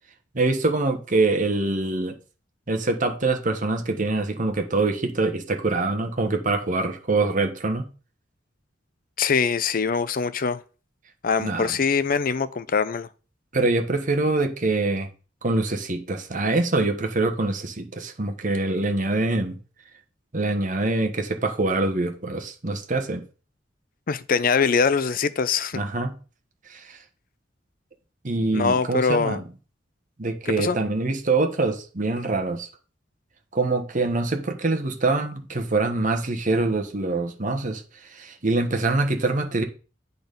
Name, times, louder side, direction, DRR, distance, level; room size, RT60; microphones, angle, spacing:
voice 1, 0.3-2.2 2.7-7.9 11.4-11.7 13.5-15.1 15.4-19.6 20.3-23.2 25.7-26.1 26.7-27.0 28.2-29.4 30.2-32.7 33.5-37.8 38.1-39.6, right 2 dB, 45° right, 1.2 m, -24 dB
voice 2, 9.2-10.6 11.2-13.1 24.1-25.8 28.5-29.4 30.5-30.8, left 5 dB, 50° left, 0.5 m, -23 dB
8.7 x 4.0 x 5.2 m
head